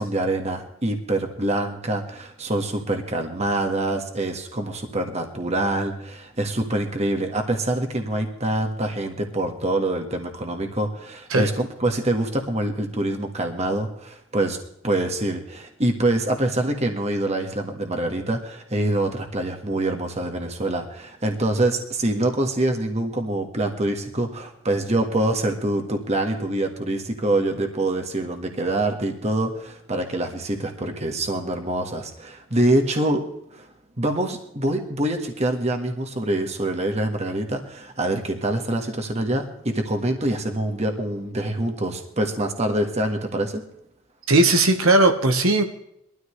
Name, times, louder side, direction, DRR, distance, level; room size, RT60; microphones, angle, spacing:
voice 1, 0.0-14.6 14.8-33.2 33.5-33.7 34.0-43.6, right 1 dB, 30° right, 4 dB, 1.6 m, -25 dB
voice 2, 44.3-45.6, right 2 dB, 80° right, 5 dB, 1.4 m, -17 dB
22.0 x 13.0 x 3.3 m, 0.75 s
head